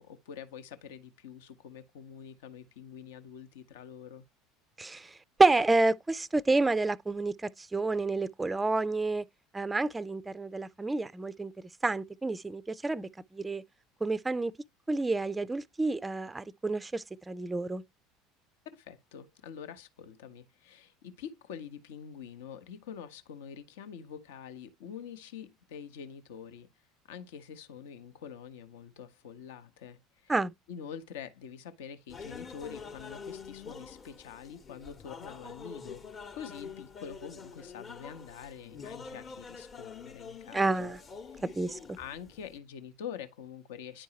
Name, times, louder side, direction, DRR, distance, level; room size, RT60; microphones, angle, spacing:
voice 1, 0.0-4.2 18.7-26.7 27.1-30.3 30.7-36.0 36.3-40.9 41.3-41.4 42.0-44.0, left 8 dB, 70° left, 0.7 m, -46 dB
voice 2, 4.8-9.2 9.5-11.5 11.8-13.6 14.0-14.5 14.9-17.8 30.3-30.5 40.5-41.0 41.4-42.0, right 3 dB, 15° right, 0.4 m, -29 dB
sound 1, 32.1-42.6, left 5 dB, 35° left, 0.9 m, -46 dB
9.9 x 4.6 x 2.8 m
figure-of-eight pair, 70°, 0 cm